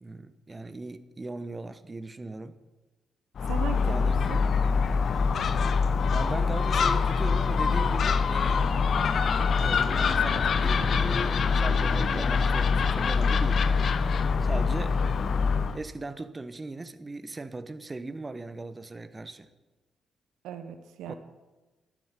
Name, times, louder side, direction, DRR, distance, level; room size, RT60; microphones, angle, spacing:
voice 1, 0.0-2.6 3.9-4.2 6.1-8.7 9.6-13.8 14.4-15.0 15.7-19.5 21.1-21.2, right 3 dB, 30° right, 1.2 m, -38 dB
Gull seagull, 3.4-15.8, left 5 dB, 55° left, 0.9 m, -24 dB
voice 2, 3.4-4.4 20.4-21.1, right 8 dB, 70° right, 1.0 m, -38 dB
Wind instrument woodwind instrument, 8.3-13.9, left 2 dB, 80° left, 5.7 m, -42 dB
11.5 x 9.6 x 9.9 m
hypercardioid pair, 40°, 0 cm